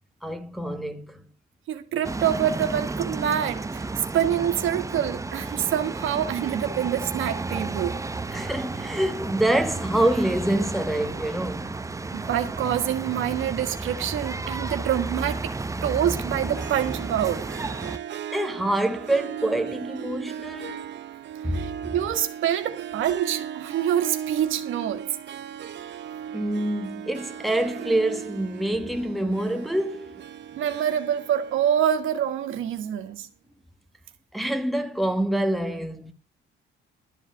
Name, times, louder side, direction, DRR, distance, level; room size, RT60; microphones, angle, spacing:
voice 1, 0.2-1.2 8.3-11.7 18.3-20.9 21.4-21.9 26.3-30.2 34.3-36.1, right 1 dB, ahead, 1.2 m, -26 dB
voice 2, 1.7-3.9 4.1-8.0 12.1-15.5 15.8-17.5 21.5-25.0 30.5-33.3, right 10 dB, 80° right, 1.5 m, -26 dB
sound 1, 2.0-18.0, right 3 dB, 15° right, 0.7 m, -32 dB
Harp, 16.4-32.9, right 9 dB, 65° right, 1.0 m, -37 dB
12.5 x 4.9 x 8.4 m
cardioid pair, 90°, 20 cm